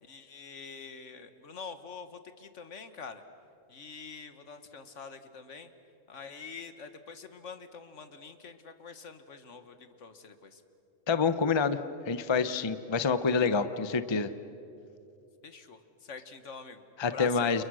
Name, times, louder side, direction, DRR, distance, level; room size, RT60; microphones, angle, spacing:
voice 1, 0.0-3.2 3.7-5.7 6.1-10.6 15.4-17.6, left 5 dB, 70° left, 9 dB, 1.7 m, -46 dB
voice 2, 11.1-11.8 12.1-14.3 17.0-17.6, left 5 dB, 25° left, 12 dB, 0.7 m, -27 dB
30.0 x 28.5 x 6.3 m, 2.6 s
omnidirectional pair, 1.3 m